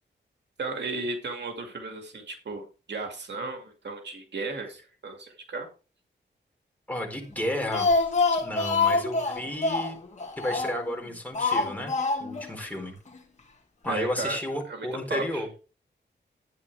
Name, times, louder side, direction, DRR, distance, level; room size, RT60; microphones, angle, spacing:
voice 1, 0.6-5.7 13.9-14.4 14.7-15.5, right 3 dB, 70° right, 4 dB, 2.4 m, -35 dB
voice 2, 6.9-8.0 8.4-10.0 10.4-11.9 12.2-12.9 13.8-15.5, left 1 dB, 10° left, 1 dB, 4.3 m, -32 dB
Speech, 7.4-10.9 11.4-12.5 12.8-12.9 13.2-13.3, left 3 dB, 40° left, 2.2 m, -26 dB
12.5 x 9.4 x 3.4 m, 0.34 s
wide cardioid pair, 105°, 19 cm